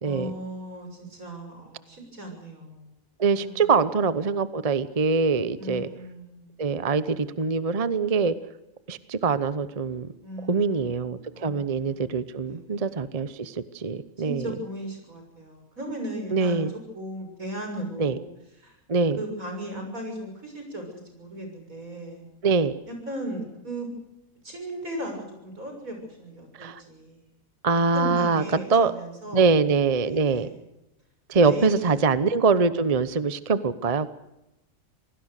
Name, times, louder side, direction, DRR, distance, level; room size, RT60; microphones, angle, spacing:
voice 1, 0.0-2.9 3.3-3.8 5.6-6.5 10.2-12.1 12.4-13.1 14.2-16.7 16.9-18.3 18.6-18.7 19.2-22.2 22.9-23.9 24.4-27.2 27.9-29.5 30.0-30.6 31.4-32.1, right 1 dB, 75° right, 4 dB, 7.1 m, -37 dB
voice 2, 3.2-5.9 6.6-8.4 8.9-10.1 10.5-14.5 16.3-16.7 18.0-18.2 18.9-19.2 22.4-22.7 26.6-26.8 27.6-28.4 28.7-28.9 29.3-30.5 31.3-34.1, right 4 dB, 30° right, 14 dB, 0.9 m, -23 dB
27.0 x 19.0 x 6.6 m, 0.91 s
omnidirectional pair, 1.4 m